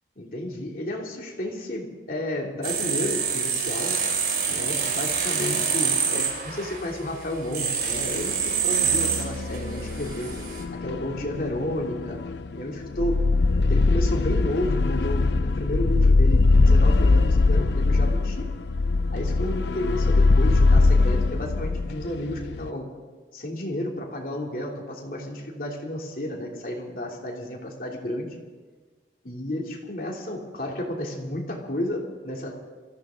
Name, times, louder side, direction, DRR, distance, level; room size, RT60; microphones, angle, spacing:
voice 1, 0.2-4.0 4.5-10.3 10.8-12.2 12.5-13.2 13.7-18.4 19.1-22.9 23.3-28.4 29.2-32.6, left 1 dB, 55° left, -1 dB, 3.1 m, -32 dB
sound 1, 2.6-10.6, right 6 dB, 55° right, 3.1 m, -27 dB
sound 2, 8.0-8.4 8.7-22.7, left 3 dB, 80° left, 0.5 m, -22 dB
24.0 x 15.0 x 3.9 m, 1.4 s
head